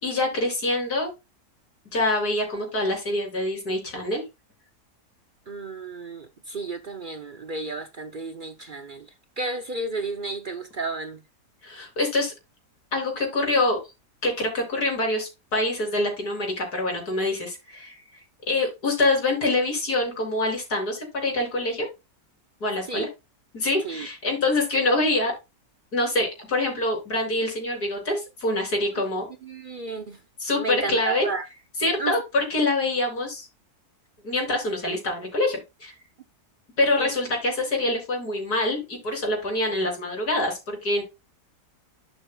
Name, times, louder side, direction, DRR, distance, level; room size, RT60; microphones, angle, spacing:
voice 1, 0.0-1.1 1.9-4.2 11.6-12.3 12.9-13.8 14.2-18.0 18.5-21.9 22.6-23.1 23.5-25.3 25.9-29.3 30.4-31.3 31.8-33.5 34.2-35.9 36.8-41.0, left 2 dB, 75° left, 4.2 m, -25 dB
voice 2, 5.5-11.2 22.9-23.1 23.8-24.1 29.4-30.2 30.6-31.5 32.0-32.1 37.0-37.1, right 3 dB, 50° right, 0.6 m, -32 dB
11.5 x 6.1 x 2.3 m
omnidirectional pair, 1.7 m